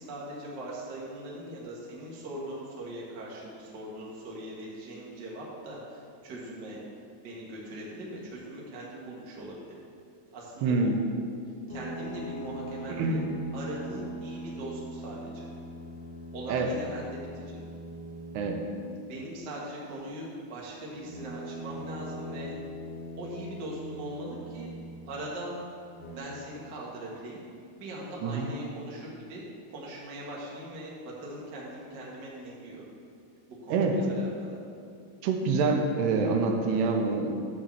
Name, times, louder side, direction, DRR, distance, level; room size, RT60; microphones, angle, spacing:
voice 1, 0.0-6.8 7.2-9.7 10.3-10.9 11.7-13.2 13.5-15.5 16.3-17.4 19.0-22.5 23.2-24.7 25.1-25.6 26.1-27.4 27.8-29.4 29.7-32.8 33.5-34.6, right 1 dB, 55° right, -5 dB, 1.1 m, -40 dB
voice 2, 10.6-11.0 12.9-13.2 16.5-16.7 18.3-18.6 28.2-28.5 33.7-33.9 35.2-37.3, right 4 dB, 85° right, 3 dB, 2.9 m, -26 dB
sound 1, 11.7-19.0 21.0-25.2 25.8-26.2, right 1 dB, 75° left, 3.7 m, -41 dB
11.0 x 3.8 x 7.3 m, 2.4 s
omnidirectional pair, 4.6 m